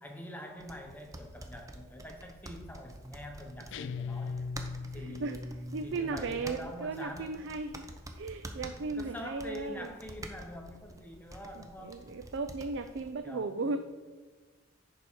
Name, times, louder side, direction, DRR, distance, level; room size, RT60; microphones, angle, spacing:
voice 1, 0.0-4.4 4.9-7.4 8.9-12.1 12.9-13.7, left 1 dB, 10° left, 3 dB, 0.9 m, -45 dB
sound 1, 0.6-13.1, right 1 dB, 15° right, 0.6 m, -48 dB
sound 2, 3.7-5.4, left 4 dB, 60° left, 0.3 m, -38 dB
voice 2, 4.9-5.4 5.7-7.9 8.2-9.9 11.6-13.8, right 3 dB, 60° right, 9 dB, 0.4 m, -36 dB
10.5 x 4.7 x 4.4 m, 1.4 s
head